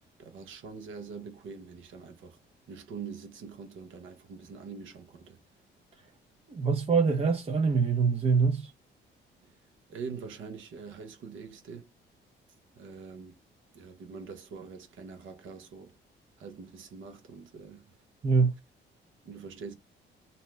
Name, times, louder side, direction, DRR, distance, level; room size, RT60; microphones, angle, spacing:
voice 1, 0.2-2.4 2.7-5.4 9.4-9.5 9.9-11.9 12.7-13.3 13.7-15.9 16.4-18.0 19.2-19.7, right 5 dB, 80° right, 1.0 m, -44 dB
voice 2, 6.5-8.7 18.2-18.5, right 5 dB, 30° right, 0.6 m, -24 dB
2.7 x 2.1 x 3.1 m
cardioid pair, 90°, 20 cm